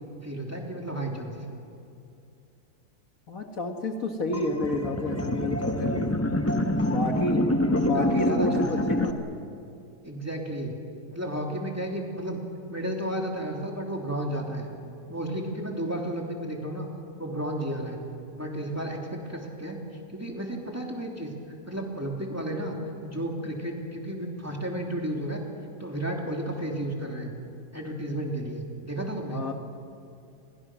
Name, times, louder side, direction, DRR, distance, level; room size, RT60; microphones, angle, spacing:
voice 1, 0.2-1.6 7.9-8.7 10.0-10.7 11.1-12.4 12.7-14.7 15.1-16.9 17.2-18.0 18.3-19.8 20.1-21.3 21.7-22.8 23.0-25.4 25.8-27.3 27.7-29.4, right 1 dB, 10° right, 0 dB, 3.0 m, -32 dB
voice 2, 3.3-6.2 6.8-7.5 7.8-9.4 29.3-29.5, left 1 dB, 55° left, 3 dB, 1.9 m, -30 dB
sound 1, 4.3-9.1, left 1 dB, 10° left, 0.9 m, -26 dB
29.5 x 22.5 x 6.2 m, 2.6 s
omnidirectional pair, 1.7 m